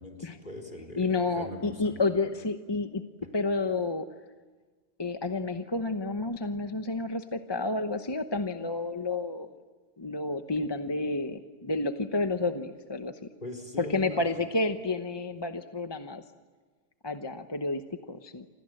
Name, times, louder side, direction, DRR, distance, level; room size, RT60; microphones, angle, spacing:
voice 1, 0.0-2.0 13.4-14.4, left 2 dB, 45° left, 5 dB, 4.2 m, -41 dB
voice 2, 1.0-3.0 3.3-4.1 5.0-9.5 10.0-13.2 13.8-16.2 17.0-18.5, left 3 dB, 25° left, 7 dB, 0.9 m, -30 dB
29.5 x 26.0 x 7.8 m, 1.3 s
omnidirectional pair, 1.2 m